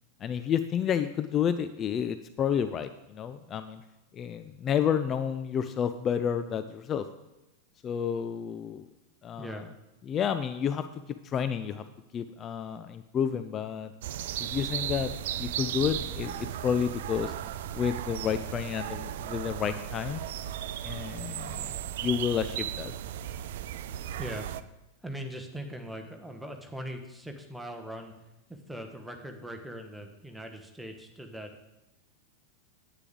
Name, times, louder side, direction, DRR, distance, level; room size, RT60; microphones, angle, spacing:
voice 1, 0.2-3.8 4.1-7.1 7.8-8.9 9.2-9.6 10.1-10.8 11.2-11.8 12.1-13.9 14.4-15.1 15.4-17.3 17.7-20.2 20.8-21.7 22.0-22.9, left 8 dB, 25° left, 10 dB, 0.4 m, -30 dB
voice 2, 9.4-9.7 24.2-24.5 25.0-28.1 28.7-31.5, equal, ahead, 3 dB, 1.1 m, -40 dB
sound 1, 14.0-24.6, right 11 dB, 55° right, 0.3 m, -36 dB
9.7 x 8.6 x 3.7 m, 0.98 s
figure-of-eight pair, 90°, 0 cm